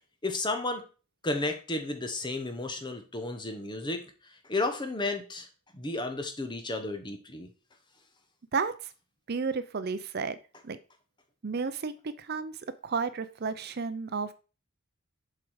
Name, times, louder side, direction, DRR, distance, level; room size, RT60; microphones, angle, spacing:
voice 1, 0.2-0.8 1.2-5.5 5.7-7.5, left 2 dB, 20° left, 6 dB, 0.9 m, -33 dB
voice 2, 8.5-8.9 9.3-10.4 10.6-10.8 11.4-12.5 12.8-14.3, right 5 dB, 50° right, 12 dB, 0.5 m, -32 dB
7.5 x 4.8 x 4.8 m, 0.35 s
head